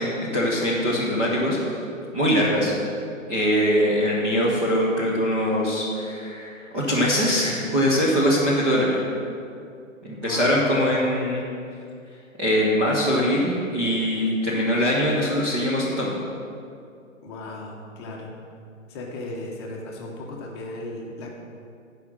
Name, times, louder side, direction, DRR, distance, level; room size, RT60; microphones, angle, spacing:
voice 1, 0.0-1.6 2.1-2.7 3.3-9.0 10.0-11.4 12.4-16.2, equal, 10° right, -8 dB, 0.6 m, -22 dB
voice 2, 10.2-10.6 17.2-18.3 18.9-21.3, left 2 dB, 20° left, -1 dB, 0.9 m, -36 dB
11.5 x 4.9 x 6.2 m, 2.5 s
figure-of-eight pair, 130°, 40 cm